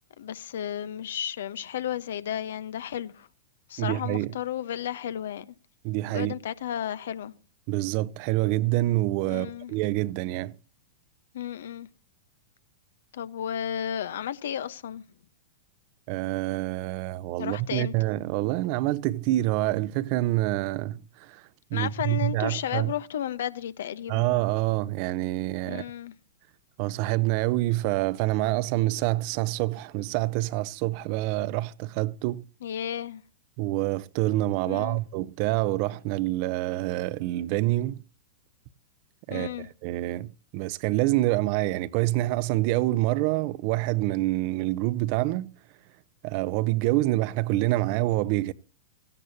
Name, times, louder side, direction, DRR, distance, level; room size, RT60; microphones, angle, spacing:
voice 1, 0.2-3.3 3.7-5.4 6.1-7.3 9.3-9.7 11.3-11.9 13.1-15.0 17.4-17.9 21.7-24.3 25.6-26.1 32.6-33.2 34.7-35.0 39.3-39.7, left 10 dB, 65° left, 1.0 m, -33 dB
voice 2, 3.8-4.3 5.8-6.3 7.7-10.5 16.1-21.4 21.7-22.9 24.1-25.9 26.8-32.4 33.6-38.0 39.3-39.5 39.8-45.5 46.2-48.5, right 17 dB, 50° right, 0.7 m, -26 dB
16.5 x 15.0 x 2.8 m
hypercardioid pair, 100°, 0 cm